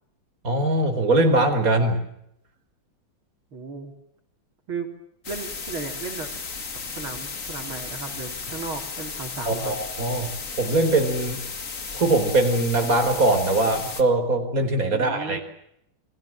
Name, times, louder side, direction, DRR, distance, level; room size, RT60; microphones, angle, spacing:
voice 1, 0.4-2.0 9.4-10.3 10.6-11.4 11.9-15.4, right 2 dB, 40° right, 6 dB, 4.9 m, -21 dB
voice 2, 3.5-3.9 4.7-4.9 5.3-6.3 6.9-9.7 11.5-11.6 14.9-15.4, right 4 dB, 75° right, 4 dB, 4.5 m, -35 dB
sound 1, 5.2-14.0, left 4 dB, 40° left, 2.3 m, -34 dB
29.5 x 22.5 x 7.6 m, 0.78 s
omnidirectional pair, 2.3 m